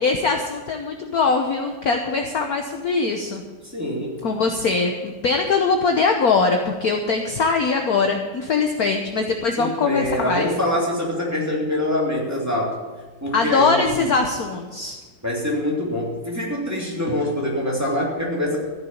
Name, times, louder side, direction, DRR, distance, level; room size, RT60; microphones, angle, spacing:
voice 1, 0.0-3.4 4.2-10.5 13.3-15.0, left 4 dB, 55° left, 4 dB, 1.2 m, -21 dB
voice 2, 3.6-4.2 9.6-12.8 13.2-14.0 15.2-18.6, left 1 dB, 5° right, -4 dB, 2.8 m, -24 dB
14.5 x 6.8 x 8.6 m, 1.3 s
omnidirectional pair, 2.3 m